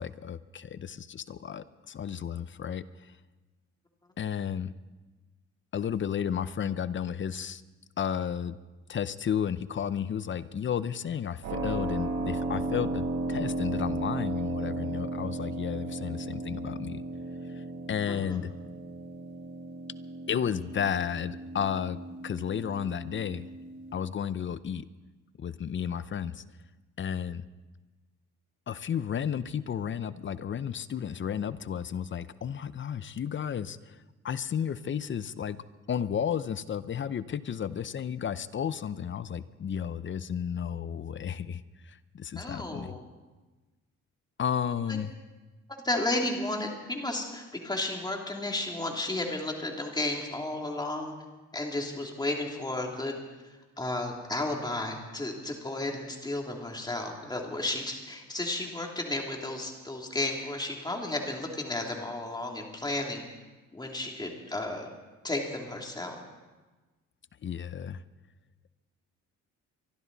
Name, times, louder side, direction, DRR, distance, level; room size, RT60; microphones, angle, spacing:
voice 1, 0.0-3.1 4.2-4.7 5.7-7.6 8.0-8.6 8.9-17.0 17.5-17.6 17.9-18.5 20.3-22.0 22.2-23.5 23.9-24.9 25.4-26.4 27.0-27.4 28.7-34.0 34.2-35.6 35.9-43.0 44.4-45.1 67.4-68.0, left 8 dB, 40° left, 15 dB, 0.7 m, -33 dB
Keyboard (musical), 11.4-23.9, right 2 dB, 85° right, 6.7 m, -35 dB
voice 2, 42.4-43.0 45.8-51.1 51.5-53.2 53.8-63.2 63.7-64.9 65.2-66.2, left 2 dB, 15° left, 1 dB, 2.8 m, -33 dB
24.0 x 12.5 x 4.0 m, 1.2 s
cardioid pair, 90°, 30 cm